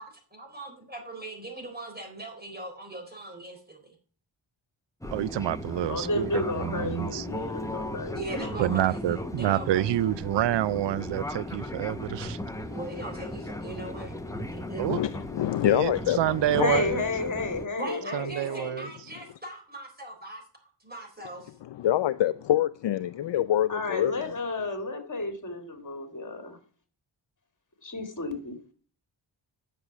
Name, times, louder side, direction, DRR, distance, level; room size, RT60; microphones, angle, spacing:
voice 1, 0.3-3.9 8.1-9.9 12.7-14.8 17.8-20.4 20.8-21.5, right 2 dB, 20° right, 3.9 m, -40 dB
Fixed-wing aircraft airplane, 5.0-17.7, left 1 dB, 5° left, 1.0 m, -36 dB
voice 2, 5.1-7.3 8.6-12.4 14.8-15.0 15.6-17.0 18.1-18.9, right 12 dB, 65° right, 0.5 m, -28 dB
voice 3, 5.7-8.5 16.5-18.9 23.7-26.6 27.8-28.6, left 3 dB, 40° left, 2.5 m, -32 dB
voice 4, 14.9-16.2 16.5-16.7 21.8-24.1, left 12 dB, 65° left, 0.5 m, -25 dB
10.0 x 6.8 x 6.0 m
wide cardioid pair, 85°, 47 cm